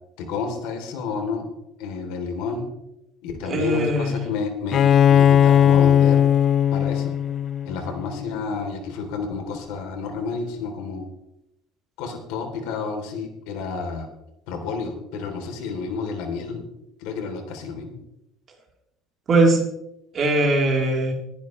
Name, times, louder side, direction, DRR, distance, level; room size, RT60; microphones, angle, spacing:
voice 1, 0.2-1.5 1.8-2.7 3.2-4.8 5.1-6.2 6.7-7.1 7.6-11.1 12.0-14.1 14.5-16.7 17.0-18.0, left 5 dB, 85° left, 4 dB, 3.2 m, -30 dB
voice 2, 3.4-4.2 19.3-19.7 20.1-21.1, right 2 dB, 30° right, 0 dB, 3.4 m, -20 dB
Bowed string instrument, 4.7-8.3, left 9 dB, 35° left, 0.4 m, -18 dB
21.0 x 10.5 x 3.2 m, 0.86 s
cardioid pair, 160°, 0 cm